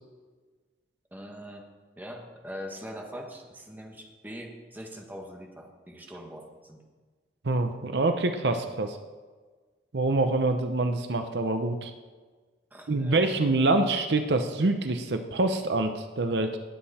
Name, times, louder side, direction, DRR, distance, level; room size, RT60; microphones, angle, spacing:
voice 1, 1.1-1.7 2.0-6.8 12.7-13.2, equal, 10° right, 1 dB, 1.5 m, -42 dB
voice 2, 7.4-9.0 9.9-11.9 12.9-16.6, right 2 dB, 70° right, 7 dB, 0.7 m, -26 dB
18.5 x 7.8 x 4.3 m, 1.4 s
head